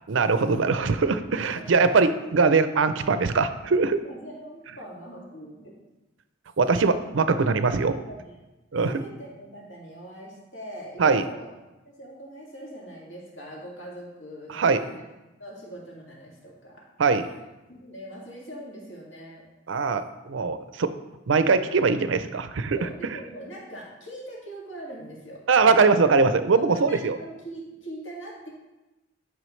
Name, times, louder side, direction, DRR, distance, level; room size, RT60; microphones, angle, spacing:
voice 1, 0.1-4.0 6.6-7.9 8.7-9.0 11.0-11.3 14.5-14.8 17.0-17.3 19.7-20.9 21.3-22.9 25.5-27.2, right 4 dB, 75° right, 11 dB, 0.5 m, -21 dB
voice 2, 1.2-1.6 4.0-5.7 7.3-7.5 7.9-8.4 8.7-11.5 11.8-15.0 15.4-16.8 17.7-19.4 22.8-25.4 26.6-28.5, right 1 dB, 65° left, -4 dB, 2.2 m, -42 dB
10.5 x 5.5 x 3.2 m, 1.0 s
head